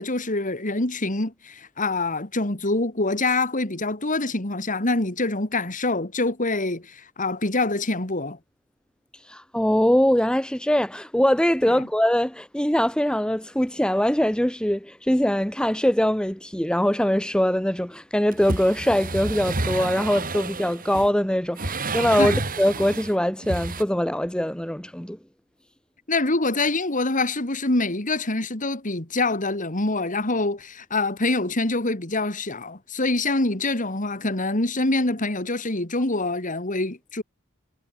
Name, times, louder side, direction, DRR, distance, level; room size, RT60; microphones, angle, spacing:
voice 1, 0.0-8.4 22.2-22.4 26.1-37.2, left 2 dB, 40° left, 2.9 m, -25 dB
voice 2, 9.3-25.2, equal, 5° left, 1.6 m, -22 dB
sound 1, 18.3-21.1 21.6-23.1 23.4-23.8, right 3 dB, 40° right, 3.4 m, -30 dB
head